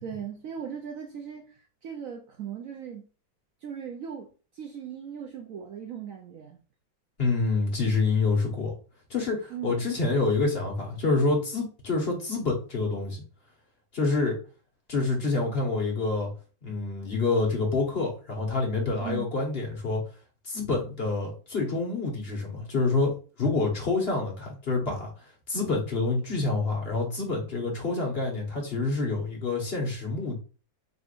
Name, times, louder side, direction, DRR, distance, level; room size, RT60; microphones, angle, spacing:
voice 1, 0.0-1.5 1.8-3.0 3.6-4.3 4.5-6.6 9.5-10.0 19.0-19.3, right 8 dB, 90° right, 0.7 m, -38 dB
voice 2, 7.2-8.7 9.1-13.2 13.9-14.3 14.9-16.3 16.6-20.0 20.4-23.1 23.4-25.1 25.5-30.4, left 3 dB, 35° left, 1.3 m, -27 dB
4.9 x 3.7 x 2.5 m
omnidirectional pair, 2.1 m